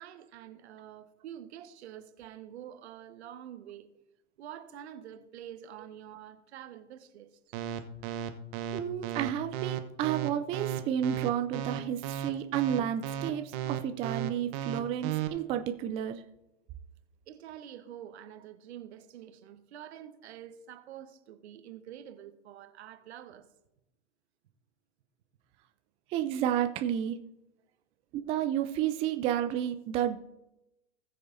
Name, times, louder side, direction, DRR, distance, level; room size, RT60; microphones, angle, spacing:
voice 1, 0.0-3.9 4.4-7.4 17.3-23.5, right 10 dB, 60° right, 1.2 m, -47 dB
sound 1, 7.5-15.3, right 11 dB, 40° right, 1.0 m, -34 dB
voice 2, 8.7-16.2 26.1-27.2 28.2-30.2, right 10 dB, 15° right, 0.3 m, -31 dB
19.5 x 6.7 x 2.7 m
hypercardioid pair, 100°, 37 cm